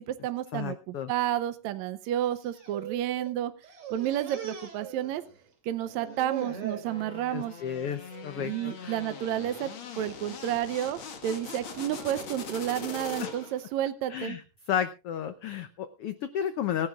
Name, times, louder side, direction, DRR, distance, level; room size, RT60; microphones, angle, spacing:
voice 1, 0.0-3.5 3.9-5.2 5.6-7.6 8.4-9.7 10.0-14.4, right 12 dB, 75° right, 11 dB, 2.0 m, -31 dB
voice 2, 0.5-1.1 7.3-9.0 14.1-14.4 14.7-16.9, left 9 dB, 80° left, 10 dB, 1.3 m, -32 dB
sound 1, 2.3-3.3 3.6-5.5 5.8-6.9 7.4-7.8 8.1-8.3 9.1-9.5 10.0-10.4 11.3-13.5, right 8 dB, 45° right, 3.5 m, -42 dB
sound 2, 6.9-13.7, left 5 dB, 45° left, 2.2 m, -41 dB
25.0 x 10.5 x 2.4 m, 0.31 s
omnidirectional pair, 3.6 m